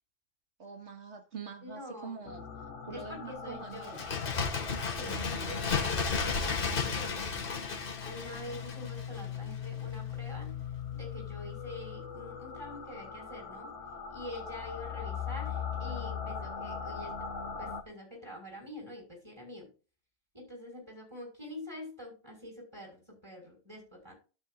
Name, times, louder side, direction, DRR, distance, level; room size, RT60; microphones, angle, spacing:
voice 1, 0.6-2.4 2.8-4.1 5.0-5.7, right 5 dB, 70° right, 2.1 m, -45 dB
voice 2, 1.6-2.2 2.9-4.0 4.9-7.3 8.0-10.6 10.9-13.7 14.1-17.1 17.6-19.7 20.3-24.1, left 1 dB, 20° right, 6.2 m, -46 dB
sound 1, 2.2-17.8, left 7 dB, 80° left, 1.5 m, -41 dB
Bird, 3.8-9.4 9.7-9.8, left 5 dB, 50° left, 1.4 m, -33 dB
12.0 x 9.2 x 2.6 m
omnidirectional pair, 1.2 m